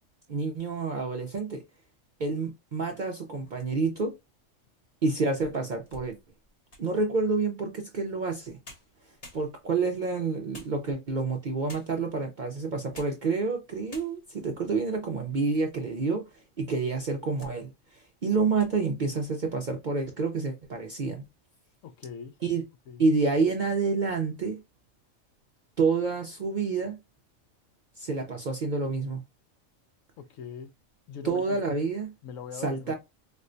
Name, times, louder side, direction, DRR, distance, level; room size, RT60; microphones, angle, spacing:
voice 1, 0.3-1.6 2.2-4.1 5.0-6.2 6.8-8.6 9.3-16.3 16.6-21.2 22.4-22.6 23.0-24.6 25.8-27.0 28.0-29.2 31.2-32.1 32.6-32.9, right 4 dB, 55° right, 0.5 m, -28 dB
sound 1, 3.4-4.1 4.7-4.8 5.3-7.0 8.3-8.4 8.6-9.9 10.5-11.2 11.7-12.1 12.8-13.3 13.6-13.7 13.9-14.5 15.0-15.8 16.1-16.2 16.9-17.6 18.0-18.2 18.5-18.8, left 1 dB, 35° left, 0.8 m, -51 dB
voice 2, 21.8-22.3 22.9-23.1 30.2-30.7 31.1-31.6 32.2-33.0, left 7 dB, 75° left, 0.9 m, -41 dB
4.3 x 2.1 x 2.5 m
omnidirectional pair, 1.4 m